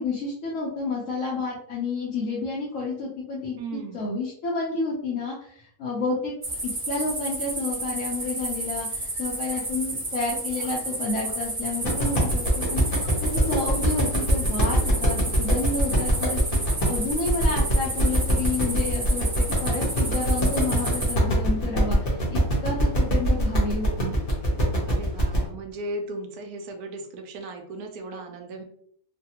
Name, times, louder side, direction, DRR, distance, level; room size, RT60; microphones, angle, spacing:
voice 1, 0.0-3.6 3.9-6.3 6.6-16.4 16.9-24.2, left 3 dB, 65° left, -5 dB, 1.0 m, -30 dB
voice 2, 3.6-4.1 24.9-28.6, right 2 dB, 75° right, 4 dB, 1.1 m, -36 dB
sound 1, 6.4-21.1, right 2 dB, 30° right, 0.6 m, -31 dB
sound 2, 11.8-25.4, equal, 40° left, 1.0 m, -24 dB
3.2 x 2.2 x 2.8 m, 0.65 s
omnidirectional pair, 1.6 m